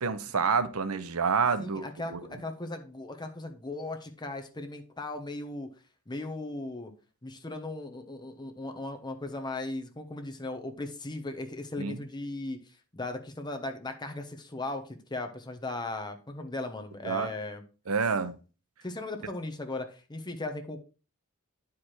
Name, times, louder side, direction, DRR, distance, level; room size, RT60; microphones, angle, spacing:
voice 1, 0.0-1.8 2.1-2.2 11.8-12.0 17.0-17.3 17.9-18.3, right 5 dB, 75° right, 0.8 m, -28 dB
voice 2, 1.6-5.7 6.1-6.9 7.2-12.6 12.9-17.6 18.8-20.8, left 2 dB, 20° left, 1.0 m, -37 dB
9.5 x 5.0 x 4.4 m
head